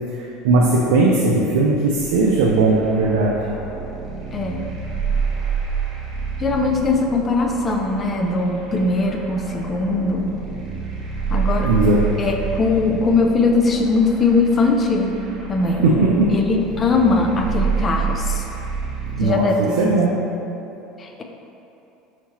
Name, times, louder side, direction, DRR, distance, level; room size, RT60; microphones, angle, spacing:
voice 1, 0.4-3.4 11.6-12.0 15.8-16.3 19.2-20.2, right 3 dB, 90° right, -3 dB, 0.4 m, -17 dB
sound 1, 1.9-19.3, right 6 dB, 50° right, 0.9 m, -28 dB
voice 2, 4.3-4.7 6.4-10.3 11.3-11.7 12.2-15.1 15.5-15.9 16.3-18.4 19.2-19.9 21.0-21.2, left 3 dB, 30° left, 3 dB, 0.4 m, -20 dB
5.8 x 2.9 x 3.0 m, 2.9 s
supercardioid pair, 115°, 0 cm